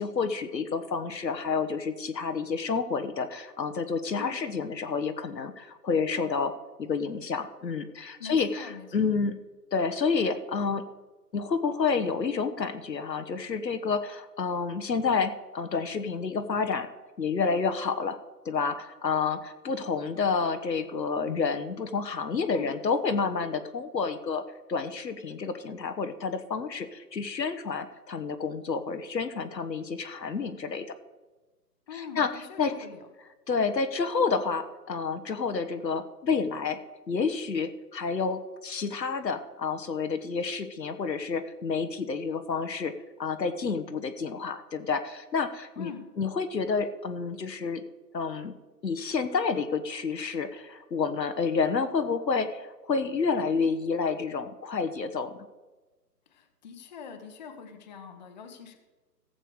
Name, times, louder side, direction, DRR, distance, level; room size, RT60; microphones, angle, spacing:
voice 1, 0.0-6.5 6.8-9.4 9.7-10.8 11.3-16.9 17.2-18.2 18.4-24.4 24.7-30.9 31.9-32.3 32.6-32.7 33.5-36.8 37.1-42.9 43.2-45.9 46.2-47.8 48.1-48.5 48.8-55.4, left 5 dB, 80° left, 9 dB, 1.2 m, -29 dB
voice 2, 8.2-9.2 22.5-22.7 31.9-33.1 45.8-46.1 56.3-58.8, left 7 dB, 25° left, 5 dB, 1.0 m, -43 dB
15.0 x 7.8 x 4.9 m, 1.2 s
figure-of-eight pair, 145°, 50 cm